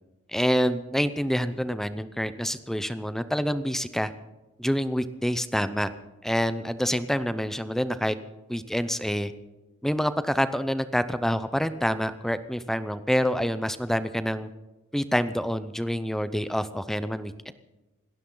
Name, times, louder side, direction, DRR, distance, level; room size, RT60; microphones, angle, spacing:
voice 1, 0.3-4.1 4.6-5.9 6.2-8.2 8.5-9.3 9.8-14.5 14.9-17.5, equal, ahead, 12 dB, 0.6 m, -27 dB
27.5 x 12.0 x 3.9 m, 1.1 s
head